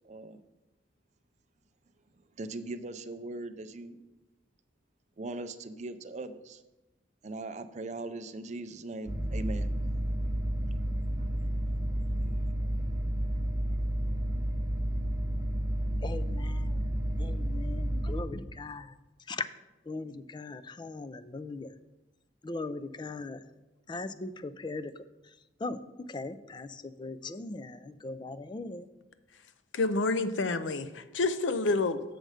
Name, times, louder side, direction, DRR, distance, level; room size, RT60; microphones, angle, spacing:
voice 1, 0.0-0.4 2.4-4.0 5.2-6.6 7.2-9.7 11.2-11.3 12.3-12.5, right 2 dB, 40° right, 10 dB, 0.5 m, -40 dB
sound 1, 9.1-18.2, equal, 20° right, 0.9 m, -31 dB
voice 2, 16.0-16.7 17.2-18.9 19.3-19.4 19.9-21.7 22.4-23.4 23.9-24.9 25.6-25.8 26.1-26.7 27.0-28.9, left 3 dB, 25° left, 14 dB, 0.3 m, -39 dB
voice 3, 29.7-32.0, left 3 dB, 90° left, 12 dB, 0.5 m, -28 dB
7.7 x 6.5 x 4.9 m, 1.0 s
head